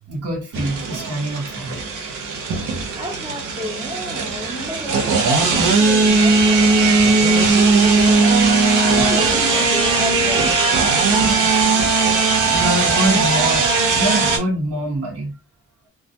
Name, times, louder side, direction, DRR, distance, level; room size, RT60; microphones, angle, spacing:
voice 1, 0.1-1.8 12.5-15.3, right 1 dB, 50° right, 1.2 m, -24 dB
sound 1, 0.5-14.4, right 3 dB, 80° right, 0.7 m, -18 dB
voice 2, 3.0-7.4 7.7-8.3 8.8-10.6 11.0-12.2, equal, 15° right, 0.8 m, -32 dB
2.3 x 2.1 x 2.7 m
cardioid pair, 95°, 30 cm